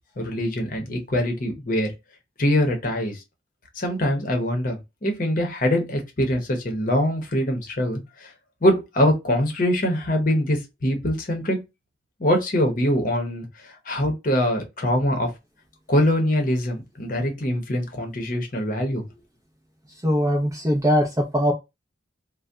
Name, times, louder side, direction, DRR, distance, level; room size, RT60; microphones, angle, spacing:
voice 1, 0.2-1.9 2.4-3.2 3.8-8.3 8.6-11.6 12.2-15.3 15.9-19.0, equal, 45° left, 0.8 m, -23 dB
voice 2, 20.0-21.5, equal, 15° right, 0.5 m, -21 dB
2.7 x 2.1 x 3.4 m
head